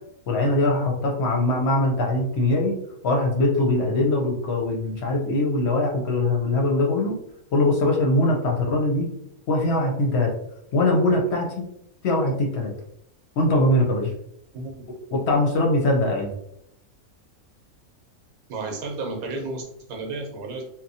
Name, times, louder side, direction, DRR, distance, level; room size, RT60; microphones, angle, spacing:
voice 1, 0.3-2.8 3.0-7.2 7.5-9.1 9.5-10.3 10.7-11.6 12.0-12.7 13.4-14.1 15.1-16.3, left 2 dB, 60° left, 0 dB, 0.8 m, -22 dB
voice 2, 18.5-20.6, right 3 dB, 80° right, 1 dB, 1.1 m, -32 dB
2.9 x 2.1 x 2.6 m, 0.75 s
omnidirectional pair, 1.5 m